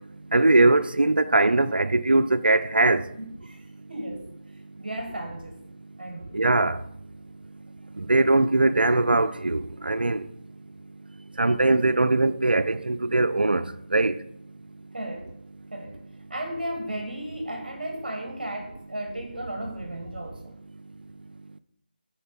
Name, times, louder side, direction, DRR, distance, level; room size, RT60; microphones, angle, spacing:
voice 1, 0.3-3.0 6.3-6.8 8.0-10.2 11.4-13.6 13.9-14.1, right 2 dB, 70° right, 0.5 m, -21 dB
voice 2, 3.1-4.3 4.8-5.6 6.0-6.3 14.9-15.3 15.7-16.0 16.3-20.5, right 1 dB, 50° right, 1.5 m, -35 dB
9.2 x 4.5 x 5.2 m
figure-of-eight pair, 160°, 5 cm